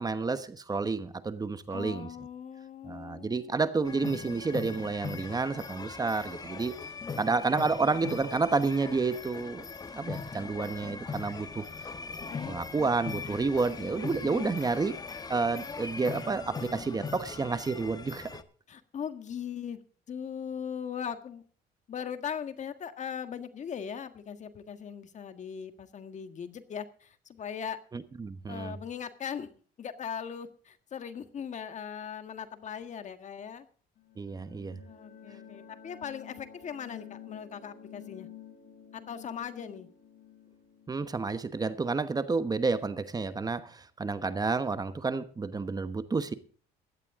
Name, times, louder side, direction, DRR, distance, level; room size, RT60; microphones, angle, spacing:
voice 1, 0.0-2.1 2.8-6.8 7.2-9.6 9.9-11.9 12.5-14.9 15.3-18.4 27.9-28.7 34.2-34.8 40.9-46.3, right 4 dB, 20° right, 1.1 m, -30 dB
voice 2, 1.7-3.5 12.2-12.6 14.2-14.5 18.7-19.8 20.1-21.4 21.9-27.8 28.5-29.5 29.8-33.7 34.9-38.3 38.9-39.9, left 7 dB, 45° left, 1.7 m, -39 dB
sound 1, 3.9-18.4, left 4 dB, 25° left, 1.3 m, -40 dB
sound 2, 34.0-42.5, left 9 dB, 65° left, 3.5 m, -51 dB
16.5 x 12.0 x 3.7 m
cardioid pair, 110°, 17 cm